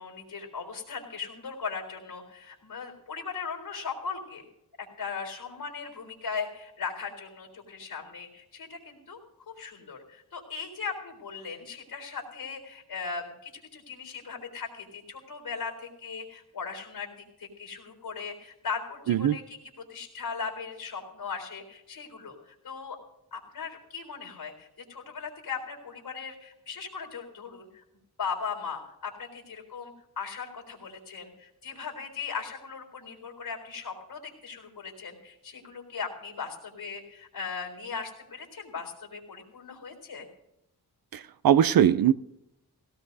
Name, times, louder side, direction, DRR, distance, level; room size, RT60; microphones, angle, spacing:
voice 1, 0.0-4.4 5.0-9.2 9.5-17.1 17.4-23.0 23.3-27.8 28.2-40.3, left 5 dB, 75° left, 2 dB, 3.9 m, -38 dB
voice 2, 41.1-42.1, right 10 dB, 65° right, 14 dB, 0.5 m, -21 dB
18.5 x 17.5 x 2.7 m, 0.85 s
wide cardioid pair, 80°, 38 cm